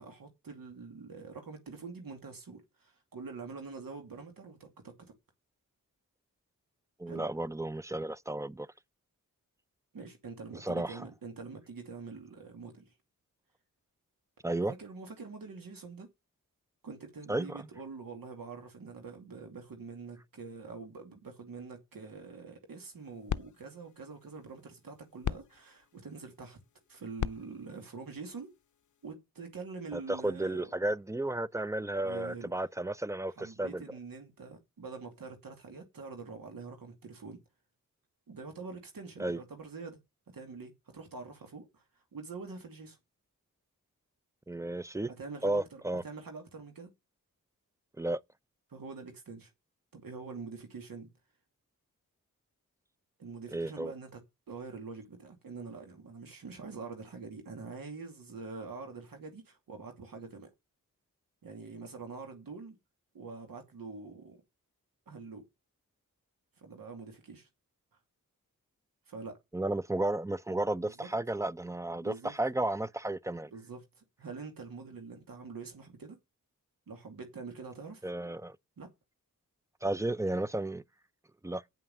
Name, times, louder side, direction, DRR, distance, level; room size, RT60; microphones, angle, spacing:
voice 1, 0.0-4.9 7.1-7.3 9.9-12.9 14.7-16.1 16.8-26.6 26.9-28.5 29.0-30.7 32.0-32.5 33.4-37.4 38.3-40.0 40.3-41.8 42.1-43.0 45.2-46.9 48.7-49.5 49.9-51.1 53.2-54.2 54.5-60.5 61.4-62.8 63.1-64.4 65.1-65.4 66.6-67.5 69.1-69.4 70.8-71.1 72.0-72.3 73.5-76.2 76.9-78.0 78.8-78.9, right 4 dB, 80° right, 2.5 m, -45 dB
voice 2, 7.0-8.7 10.6-11.1 14.4-14.7 17.3-17.7 29.9-33.8 39.2-39.4 44.5-45.1 45.4-46.0 48.0-48.2 53.5-53.9 69.5-73.5 78.0-78.6 79.8-80.8 81.4-81.6, right 1 dB, 10° right, 0.6 m, -33 dB
sound 1, 22.7-29.1, left 9 dB, 60° left, 0.6 m, -42 dB
9.1 x 5.6 x 7.6 m
cardioid pair, 55°, 34 cm